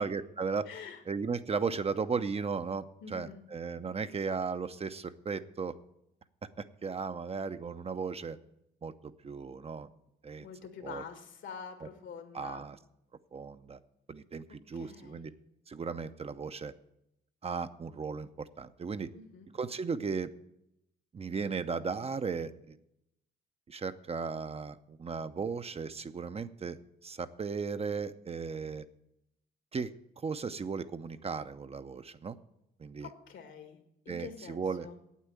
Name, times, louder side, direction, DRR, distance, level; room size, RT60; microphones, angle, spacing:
voice 1, 0.0-0.7 1.1-2.9 3.1-5.7 6.6-8.4 8.8-9.9 10.2-10.5 10.8-11.0 12.3-12.8 13.3-13.8 14.1-15.3 15.7-16.7 17.4-19.1 19.5-20.3 21.1-22.8 23.7-28.8 29.7-29.9 30.2-32.4 32.8-33.1 34.1-34.9, right 5 dB, 30° right, 11 dB, 0.6 m, -36 dB
voice 2, 0.7-1.0 3.0-3.4 10.4-12.7 14.7-15.3 19.1-19.5 33.0-33.8 34.1-35.0, left 6 dB, 75° left, 6 dB, 2.1 m, -46 dB
8.6 x 8.3 x 9.0 m, 0.81 s
cardioid pair, 90°, 20 cm